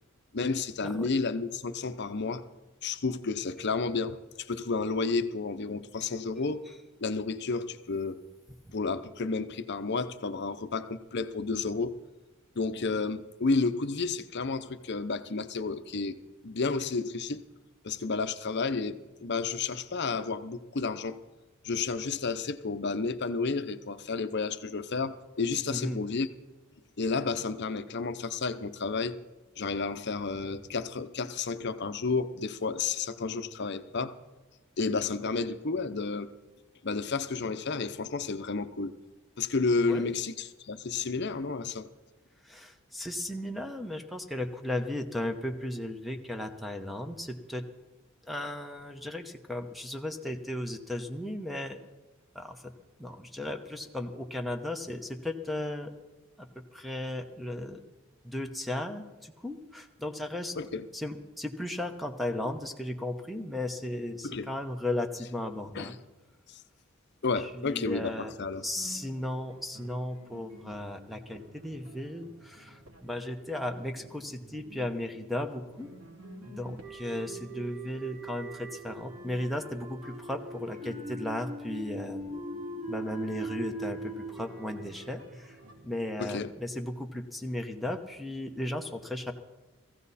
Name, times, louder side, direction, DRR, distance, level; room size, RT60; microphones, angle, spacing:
voice 1, 0.3-2.4 2.8-6.6 7.0-8.2 8.7-11.9 12.6-16.2 16.4-17.4 17.8-21.2 21.6-26.3 27.0-29.2 29.6-34.1 34.8-36.3 36.8-38.9 39.4-41.9 60.6-60.8 64.2-64.5 65.7-65.9 66.5-66.6 67.2-68.7 86.2-86.5, left 4 dB, 55° left, 0.8 m, -31 dB
voice 2, 25.7-26.0 39.8-40.1 42.4-47.6 48.3-51.8 52.3-52.6 53.0-55.9 56.4-56.5 56.7-57.8 58.2-60.6 60.9-65.9 67.4-68.3 68.6-75.9 76.4-82.4 82.9-85.6 85.8-89.3, left 1 dB, ahead, 1.0 m, -35 dB
sound 1, 68.6-86.0, equal, 70° right, 3.2 m, -52 dB
sound 2, 76.8-86.0, right 2 dB, 35° right, 2.1 m, -41 dB
18.0 x 15.0 x 4.2 m
head